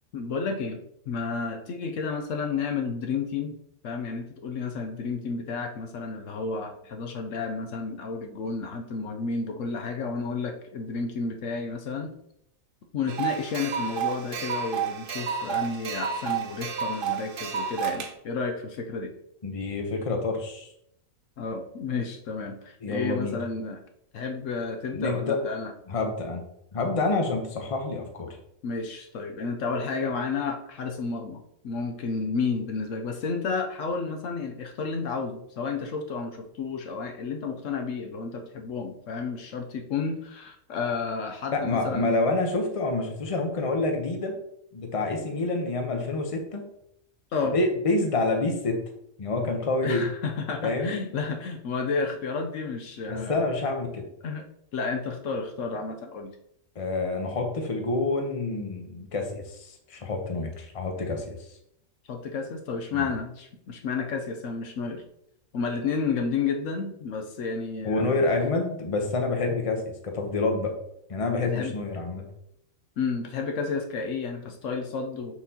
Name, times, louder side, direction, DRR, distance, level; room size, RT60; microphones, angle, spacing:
voice 1, 0.1-3.6 3.8-12.1 12.9-19.1 21.4-23.8 24.1-25.7 28.6-42.3 47.3-47.6 49.8-53.4 54.2-54.4 54.7-56.3 62.1-65.0 65.5-68.3 71.4-71.8 73.0-75.3, left 4 dB, 70° left, 4 dB, 1.0 m, -31 dB
sound 1, 13.1-18.1, right 7 dB, 50° right, 0.8 m, -30 dB
voice 2, 19.4-20.7 22.8-23.4 24.9-25.4 25.9-26.4 26.7-28.4 41.5-44.3 44.7-46.6 47.4-48.8 49.2-50.1 50.6-51.0 53.1-54.0 56.7-61.4 62.9-63.1 67.8-70.7 71.1-72.2, left 3 dB, 30° left, 3 dB, 0.9 m, -27 dB
6.1 x 5.8 x 2.9 m, 0.72 s
omnidirectional pair, 1.4 m